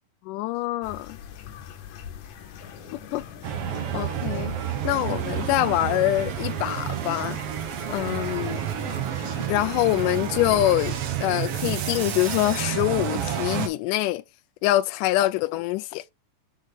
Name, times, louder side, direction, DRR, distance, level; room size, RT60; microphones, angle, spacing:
voice 1, 0.3-1.2 2.9-3.2 3.6-4.5 4.8-7.4 7.9-8.6 9.5-14.2 14.6-16.0, left 16 dB, 90° left, 2.1 m, -25 dB
sound 1, 0.8-11.0, left 8 dB, 70° left, 2.1 m, -44 dB
sound 2, 2.6-12.9, left 4 dB, 50° left, 1.8 m, -48 dB
sound 3, 3.4-13.7, right 10 dB, 65° right, 1.7 m, -30 dB
6.4 x 4.7 x 3.8 m
omnidirectional pair, 3.6 m